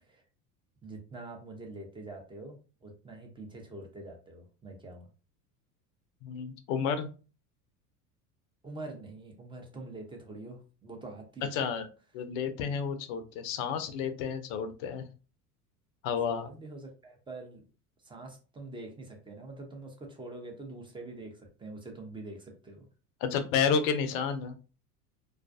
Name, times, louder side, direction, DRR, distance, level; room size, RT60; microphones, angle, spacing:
voice 1, 0.8-5.1 8.6-11.7 16.4-17.6 18.0-22.9, right 2 dB, 10° right, 2 dB, 0.6 m, -45 dB
voice 2, 6.2-7.1 11.5-11.9 12.1-15.0 16.0-16.5 23.2-24.5, left 6 dB, 60° left, 9 dB, 0.6 m, -31 dB
2.3 x 2.1 x 2.5 m, 0.35 s
hypercardioid pair, 75°, 46 cm